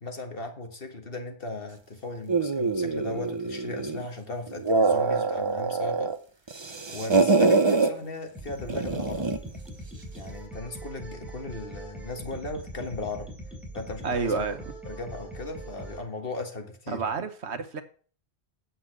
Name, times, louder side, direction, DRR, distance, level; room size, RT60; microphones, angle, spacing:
voice 1, 0.0-6.1 6.9-9.3 10.1-13.3 13.7-14.5 14.9-17.1, left 2 dB, 55° left, 1.8 m, -37 dB
sound 1, 2.3-4.1 4.5-6.2 6.5-7.9 8.7-9.5, right 3 dB, 30° right, 0.7 m, -24 dB
sound 2, 8.3-16.0, right 1 dB, ahead, 3.3 m, -41 dB
voice 2, 14.0-14.7 16.9-17.8, right 5 dB, 75° right, 1.3 m, -30 dB
8.8 x 7.5 x 6.0 m
omnidirectional pair, 1.2 m